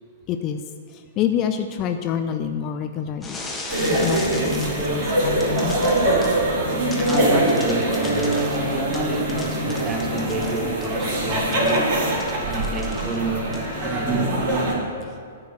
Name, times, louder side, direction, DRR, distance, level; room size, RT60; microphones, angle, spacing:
voice 1, 0.3-0.6 0.9-3.4 3.9-6.0, left 8 dB, 30° left, 7 dB, 0.5 m, -27 dB
sound 1, 3.2-5.0 5.4-6.4 6.9-11.0 11.5-13.3 13.5-13.8, left 2 dB, 10° left, 1.3 m, -36 dB
sound 2, 3.7-14.7, right 1 dB, 45° right, 2.9 m, -23 dB
voice 2, 7.0-11.9 12.4-14.8, right 2 dB, 20° right, 3 dB, 1.2 m, -29 dB
10.5 x 4.7 x 7.6 m, 2.1 s
figure-of-eight pair, 110°, 0 cm